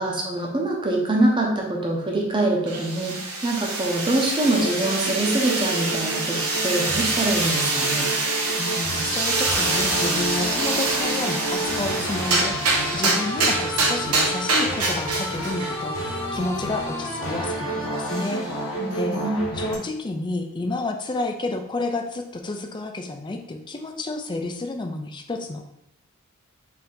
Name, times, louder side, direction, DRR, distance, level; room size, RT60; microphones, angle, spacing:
voice 1, 0.0-3.1 3.4-8.1 18.8-19.4, right 2 dB, 20° right, -1 dB, 0.8 m, -24 dB
sound 1, 2.7-15.8, right 3 dB, 85° right, 0.9 m, -25 dB
sound 2, 4.4-19.7, right 1 dB, 60° left, 1.1 m, -30 dB
voice 2, 8.6-18.6 18.9-19.2 19.5-25.6, left 2 dB, 20° left, 5 dB, 0.4 m, -30 dB
4.3 x 2.8 x 3.8 m, 0.78 s
head